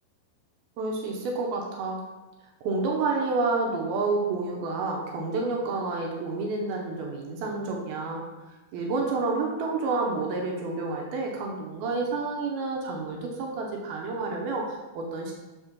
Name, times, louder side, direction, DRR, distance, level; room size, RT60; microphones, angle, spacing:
voice 1, 0.8-2.0 2.6-8.3 8.7-15.3, right 3 dB, 75° right, 0 dB, 2.4 m, -29 dB
6.4 x 4.2 x 6.0 m, 1.1 s
omnidirectional pair, 4.9 m